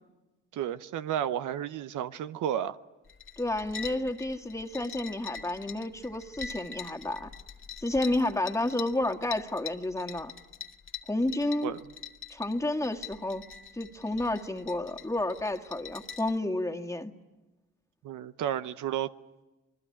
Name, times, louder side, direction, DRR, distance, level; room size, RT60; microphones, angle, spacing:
voice 1, 0.5-2.8 11.6-11.8 18.0-19.1, right 10 dB, 70° right, 0.8 m, -32 dB
sound 1, 3.0-16.4, left 7 dB, 40° left, 1.5 m, -44 dB
voice 2, 3.4-7.3 7.8-10.3 11.1-11.7 12.3-13.4 13.7-17.1, left 1 dB, 10° left, 1.9 m, -31 dB
26.5 x 20.0 x 8.6 m
supercardioid pair, 55°, 32 cm